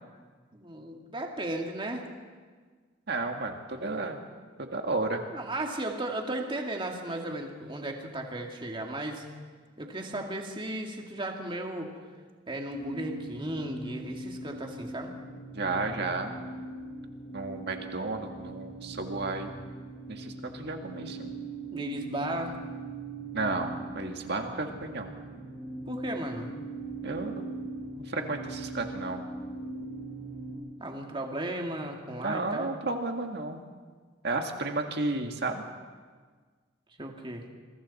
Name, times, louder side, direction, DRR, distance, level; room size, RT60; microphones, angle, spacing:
voice 1, 0.5-2.0 5.3-9.3 9.8-11.9 12.5-15.2 21.7-22.6 25.9-26.5 30.8-32.7 37.0-37.5, right 1 dB, 25° right, 2 dB, 2.3 m, -35 dB
voice 2, 3.1-4.2 4.6-5.2 15.5-16.3 17.3-19.5 20.1-21.4 23.3-25.1 27.0-27.5 28.0-29.2 32.2-33.7 34.2-35.6, right 3 dB, 60° right, 4 dB, 1.8 m, -32 dB
sound 1, 12.7-30.5, right 2 dB, 65° left, 6.6 m, -40 dB
27.5 x 22.5 x 4.3 m, 1.5 s
head